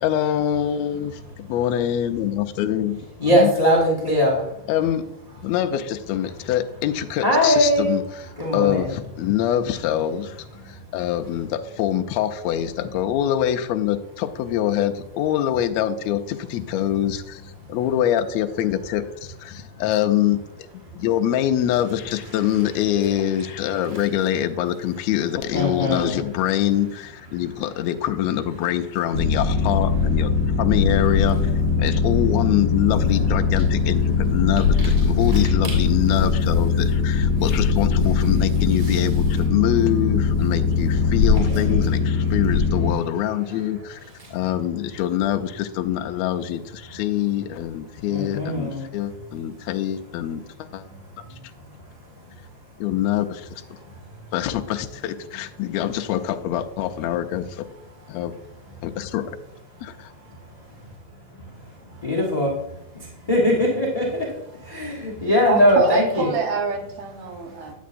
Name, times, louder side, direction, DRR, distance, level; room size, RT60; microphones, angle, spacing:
voice 1, 0.0-3.5 4.7-5.1 5.4-8.0 8.5-17.4 17.7-20.4 20.9-30.3 30.6-31.4 31.8-44.0 44.3-50.4 50.7-50.8 51.2-51.3 52.8-53.5 54.3-57.7 58.1-58.3 58.8-59.4 59.8-60.1, left 11 dB, 85° left, 6 dB, 1.5 m, -24 dB
voice 2, 3.2-4.4 7.2-7.9 8.4-8.9 25.5-26.2 48.1-48.8 62.0-62.5 63.3-64.2 64.7-66.3, equal, 45° left, -3 dB, 0.4 m, -20 dB
Boat Water vehicle, 29.1-42.9, left 5 dB, 35° right, 2.9 m, -20 dB
voice 3, 65.4-67.7, right 5 dB, 70° right, 4 dB, 2.3 m, -26 dB
9.2 x 8.2 x 2.5 m, 0.81 s
omnidirectional pair, 3.7 m